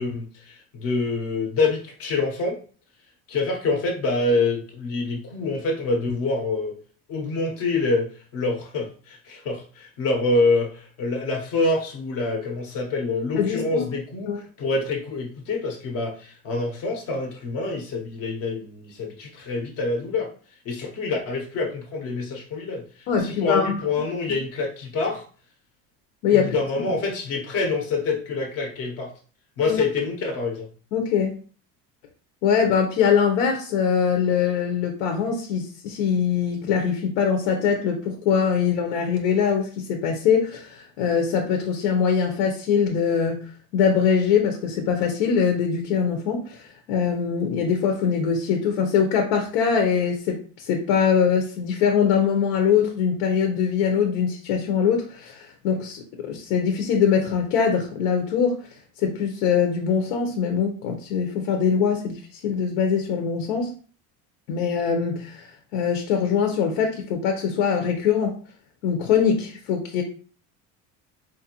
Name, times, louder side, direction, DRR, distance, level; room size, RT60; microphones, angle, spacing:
voice 1, 0.0-2.6 3.3-6.8 7.1-20.3 20.6-22.8 23.2-25.2 26.3-29.1 29.6-30.7, left 3 dB, 45° left, 0.8 m, -26 dB
voice 2, 13.4-13.9 14.3-14.4 23.1-23.8 24.3-24.4 26.2-26.5 29.7-29.8 30.9-31.4 32.4-58.7 59.0-63.7 64.5-68.4 68.8-70.0, left 7 dB, 85° left, 0.9 m, -23 dB
4.6 x 2.5 x 2.9 m
cardioid pair, 170°, 35 cm